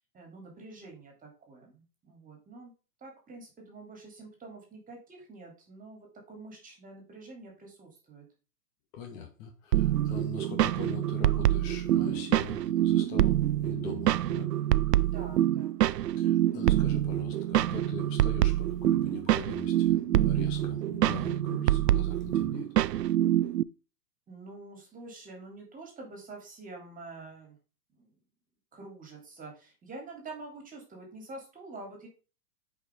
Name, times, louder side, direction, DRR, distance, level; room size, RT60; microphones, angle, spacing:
voice 1, 0.1-2.7 3.0-8.3 15.0-15.8 24.3-27.6 27.9-28.2 28.7-32.1, right 3 dB, 15° right, 1 dB, 2.9 m, -47 dB
voice 2, 8.9-14.5 16.2-22.7, left 7 dB, 40° left, 4 dB, 2.3 m, -42 dB
sound 1, 9.7-23.6, right 13 dB, 80° right, 0.6 m, -26 dB
8.2 x 5.3 x 3.6 m, 0.34 s
hypercardioid pair, 125°, 48 cm